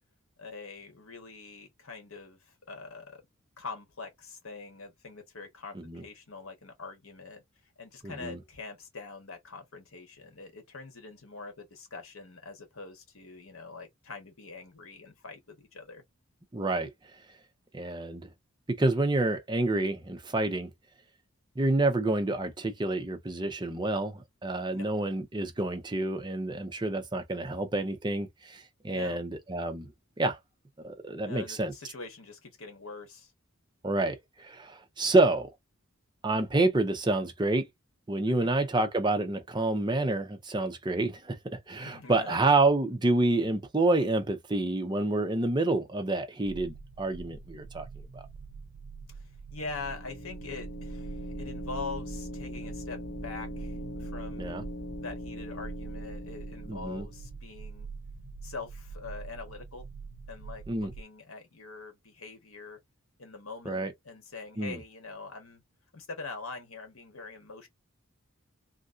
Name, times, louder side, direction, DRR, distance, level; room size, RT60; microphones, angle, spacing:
voice 1, 0.4-3.2 3.6-7.4 7.8-16.0 24.7-24.9 28.9-29.2 31.2-33.3 38.3-38.5 41.8-42.5 49.1-49.2 49.5-54.5 55.0-57.9 58.4-59.9 60.3-62.8 63.2-65.6 65.9-67.7, left 4 dB, 75° left, 1.4 m, -43 dB
voice 2, 8.0-8.4 16.5-16.9 17.7-18.3 18.8-20.7 21.6-29.9 30.2-30.4 30.8-31.7 33.8-35.5 36.2-37.7 38.1-47.9 48.1-48.2 54.4-54.6 56.7-57.1 60.7-60.9 63.7-63.9 64.6-64.8, right 2 dB, 20° right, 0.6 m, -28 dB
sound 1, 46.4-61.0, right 5 dB, 85° right, 0.5 m, -44 dB
sound 2, 49.6-57.3, left 1 dB, 45° left, 1.0 m, -41 dB
3.2 x 2.5 x 2.5 m
head